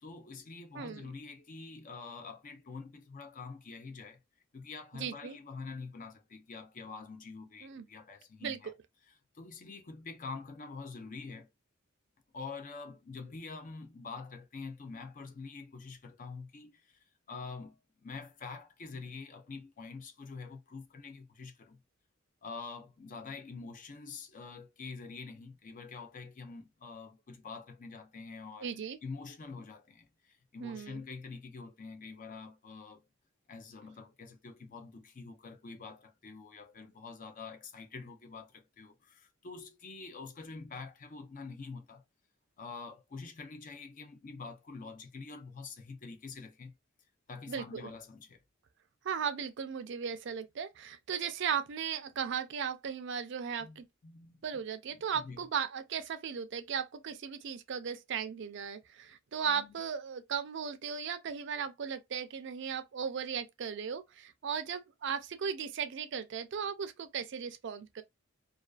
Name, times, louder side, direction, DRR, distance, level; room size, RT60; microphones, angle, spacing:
voice 1, 0.0-4.2 4.5-8.7 9.3-11.5 12.3-21.8 22.4-28.8 29.0-33.0 33.5-42.0 42.6-46.8 47.3-48.4 53.6-54.6 55.1-55.5 59.5-59.7, left 4 dB, 40° left, 0.5 m, -46 dB
voice 2, 0.8-1.1 4.9-5.4 7.6-7.9 8.4-8.6 28.6-29.0 30.6-31.0 47.5-47.9 49.0-53.8 54.4-68.0, right 7 dB, 60° right, 0.4 m, -36 dB
2.4 x 2.3 x 2.3 m
head